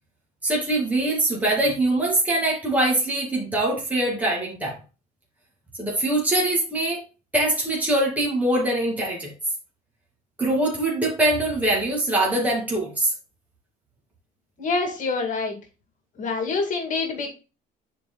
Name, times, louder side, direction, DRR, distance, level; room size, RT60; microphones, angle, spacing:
voice 1, 0.4-4.8 5.8-7.0 7.3-9.3 10.4-13.1, right 1 dB, 10° right, -3 dB, 2.4 m, -23 dB
voice 2, 14.6-15.6 16.2-17.3, left 4 dB, 50° left, 3 dB, 2.1 m, -26 dB
10.5 x 4.7 x 2.3 m, 0.31 s
cardioid pair, 110°, 17 cm